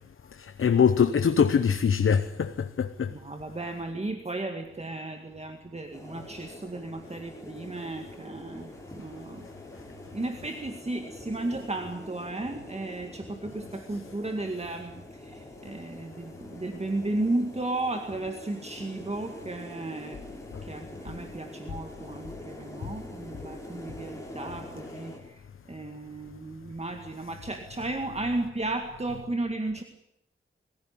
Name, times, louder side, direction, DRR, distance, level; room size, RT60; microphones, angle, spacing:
voice 1, 0.4-3.1, left 7 dB, 85° left, 0.9 m, -23 dB
voice 2, 3.1-9.5 10.1-20.2 20.6-29.8, right 2 dB, 30° right, 2.1 m, -34 dB
sound 1, 5.9-25.2, left 1 dB, 15° left, 5.9 m, -45 dB
22.0 x 16.0 x 9.9 m
wide cardioid pair, 85°, 21 cm